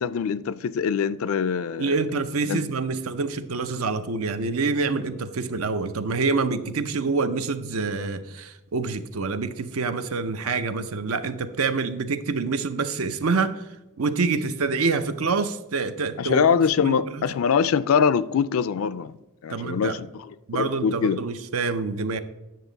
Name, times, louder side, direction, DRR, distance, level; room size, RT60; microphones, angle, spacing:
voice 1, 0.0-2.0 2.4-2.6 16.2-19.1 19.4-20.1 20.5-21.2, left 6 dB, 70° left, 0.4 m, -23 dB
voice 2, 1.8-13.7 14.0-17.3 19.5-20.0 20.5-22.2, right 4 dB, 75° right, 0.6 m, -26 dB
9.3 x 6.5 x 3.9 m
head